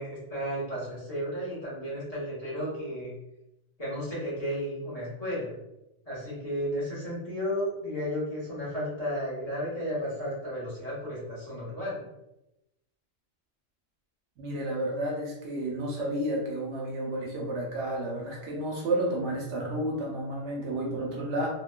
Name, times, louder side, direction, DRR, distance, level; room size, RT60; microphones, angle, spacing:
voice 1, 0.0-3.1 3.8-5.6 6.0-12.0, equal, 35° left, -9 dB, 0.9 m, -33 dB
voice 2, 14.4-21.5, right 1 dB, 65° right, -2 dB, 0.8 m, -31 dB
3.1 x 2.1 x 2.2 m, 0.89 s
omnidirectional pair, 1.3 m